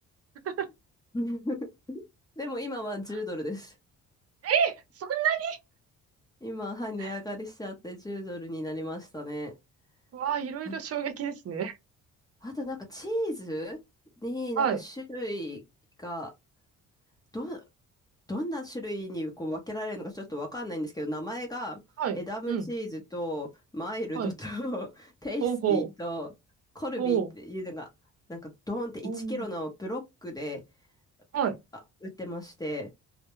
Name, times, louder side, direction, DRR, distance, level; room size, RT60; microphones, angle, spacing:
voice 1, 1.1-2.0 2.4-3.7 6.4-9.5 10.7-10.8 12.4-13.8 14.2-15.6 16.0-16.3 17.3-17.6 18.3-21.8 22.1-23.5 23.7-26.3 26.7-27.9 28.3-30.6 32.0-32.9, equal, 10° left, 0.7 m, -35 dB
voice 2, 4.4-5.6 7.0-7.1 10.1-11.8 14.6-14.8 22.0-22.2 22.5-22.7 24.1-24.3 25.4-25.9 27.0-27.3 29.0-29.5 31.3-31.6, right 8 dB, 50° right, 0.6 m, -28 dB
2.2 x 2.0 x 3.0 m
cardioid pair, 90°, 30 cm